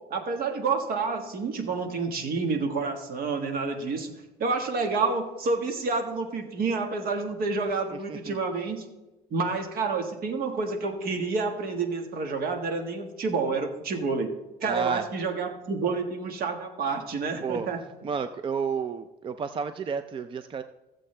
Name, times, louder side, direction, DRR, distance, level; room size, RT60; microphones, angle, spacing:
voice 1, 0.1-4.1 4.4-8.8 9.3-14.3 14.6-17.8, right 4 dB, 60° right, 4 dB, 1.6 m, -29 dB
voice 2, 14.6-15.0 17.4-17.7 18.0-20.6, right 5 dB, 30° right, 10 dB, 0.4 m, -31 dB
15.5 x 7.5 x 3.3 m, 1.0 s
cardioid pair, 110°, 17 cm